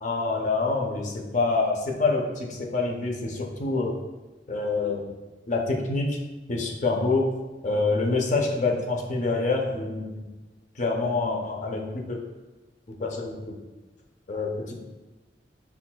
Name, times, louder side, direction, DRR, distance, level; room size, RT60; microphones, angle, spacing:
voice 1, 0.0-3.9 4.5-5.1 5.5-6.2 6.5-7.3 7.6-10.2 10.8-12.2 13.0-13.5 14.3-14.8, left 3 dB, 45° left, 0 dB, 0.5 m, -26 dB
5.7 x 2.2 x 2.2 m, 1.2 s
head